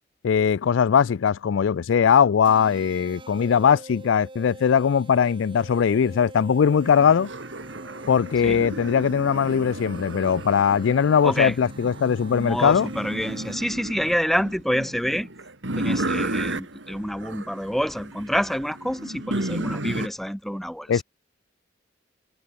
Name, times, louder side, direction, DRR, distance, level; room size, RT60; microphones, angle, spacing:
voice 1, 0.2-7.3 8.1-12.9 20.9-21.0, left 7 dB, 80° left, 0.4 m, -20 dB
sound 1, 2.5-13.8, right 2 dB, 25° right, 4.7 m, -45 dB
sound 2, 6.8-20.1, right 1 dB, 75° right, 3.3 m, -33 dB
voice 2, 11.2-11.6 12.3-15.3 15.7-21.0, equal, ahead, 1.2 m, -27 dB
head